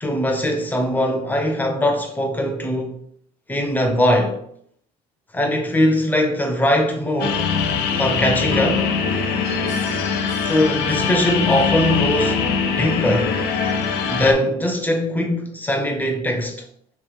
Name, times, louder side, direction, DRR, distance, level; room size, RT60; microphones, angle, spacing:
voice 1, 0.0-3.0 3.5-4.4 5.3-7.5 8.0-8.9 10.5-12.5 12.8-13.4 14.1-16.6, left 1 dB, 10° left, 0.7 m, -21 dB
sound 1, 7.2-14.3, left 6 dB, 85° left, 0.5 m, -22 dB
3.1 x 3.0 x 3.3 m
cardioid pair, 110°, 17 cm